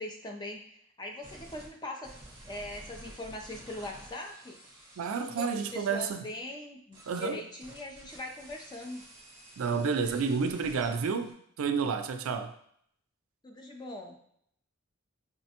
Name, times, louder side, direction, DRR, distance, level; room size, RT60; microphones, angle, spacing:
voice 1, 0.0-2.1 2.5-4.6 5.3-9.0 13.4-14.2, left 1 dB, 20° left, 0.4 m, -41 dB
sound 1, 1.2-1.7 2.0-6.1 6.9-11.3, right 1 dB, 20° right, 1.0 m, -51 dB
voice 2, 5.0-6.2 7.1-7.4 9.6-12.5, right 5 dB, 75° right, 0.4 m, -30 dB
5.5 x 2.1 x 2.8 m
head